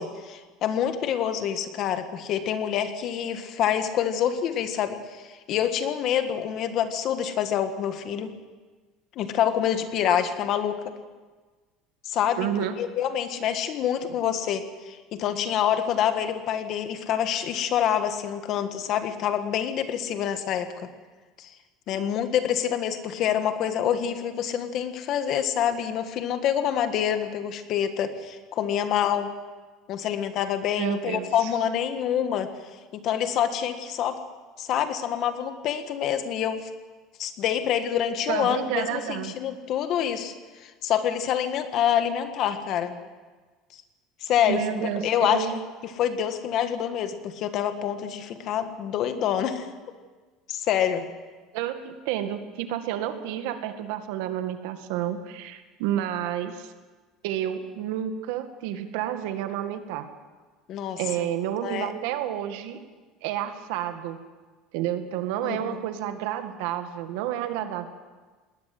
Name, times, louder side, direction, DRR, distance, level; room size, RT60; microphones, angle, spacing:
voice 1, 0.0-8.3 9.1-10.8 12.0-20.9 21.4-21.5 21.9-29.3 29.9-32.5 32.9-34.2 34.6-36.7 37.2-40.3 40.6-42.9 44.2-45.6 45.8-49.7 50.5-51.1 60.7-61.3 61.6-61.9 65.4-65.8, left 9 dB, 45° left, 9 dB, 1.6 m, -27 dB
voice 2, 12.4-12.8 30.8-31.5 38.3-39.4 44.4-45.6 51.5-56.7 57.2-60.1 61.0-62.8 63.2-64.2 64.7-67.9, right 11 dB, 80° right, 8 dB, 2.0 m, -30 dB
20.0 x 18.5 x 7.8 m, 1.3 s
cardioid pair, 160°, 0 cm